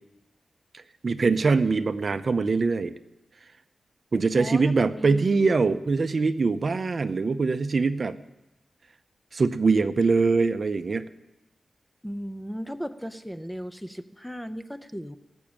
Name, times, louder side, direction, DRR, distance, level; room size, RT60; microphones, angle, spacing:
voice 1, 0.7-2.9 4.1-8.2 9.3-11.0, right 4 dB, 45° right, 10 dB, 0.6 m, -23 dB
voice 2, 4.4-5.3 12.0-15.2, equal, 5° left, 11 dB, 0.6 m, -36 dB
15.5 x 6.1 x 8.7 m, 0.94 s
wide cardioid pair, 140°, 0 cm